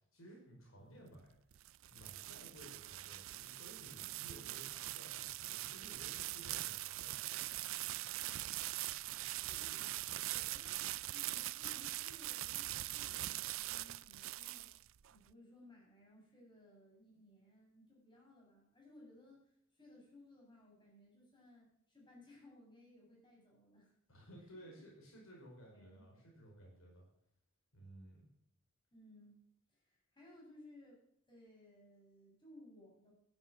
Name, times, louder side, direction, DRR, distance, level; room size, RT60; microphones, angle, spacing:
voice 1, 0.1-1.4 1.9-7.3 24.1-27.1 27.7-28.3, right 1 dB, 75° left, -1 dB, 5.1 m, -57 dB
sound 1, 1.3-15.1, right 16 dB, 70° right, 0.4 m, -42 dB
voice 2, 9.4-9.9 10.3-14.7 15.1-23.9 24.4-24.8 25.7-26.1 28.9-29.4 29.7-31.0 31.3-33.1, left 1 dB, 25° left, -3 dB, 7.2 m, -61 dB
12.5 x 10.5 x 6.3 m, 0.72 s
head